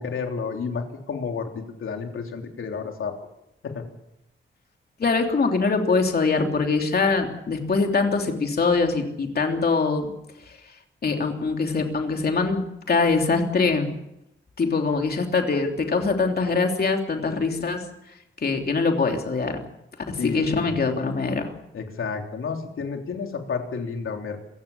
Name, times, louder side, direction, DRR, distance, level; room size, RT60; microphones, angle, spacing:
voice 1, 0.0-3.2 3.6-3.8 20.2-20.7 21.7-24.4, left 5 dB, 80° left, 3 dB, 3.5 m, -31 dB
voice 2, 5.0-10.1 11.0-14.0 14.6-17.8 18.4-19.6 20.1-21.5, left 4 dB, 50° left, 3 dB, 3.2 m, -23 dB
27.0 x 16.0 x 7.2 m, 0.85 s
wide cardioid pair, 160°, 21 cm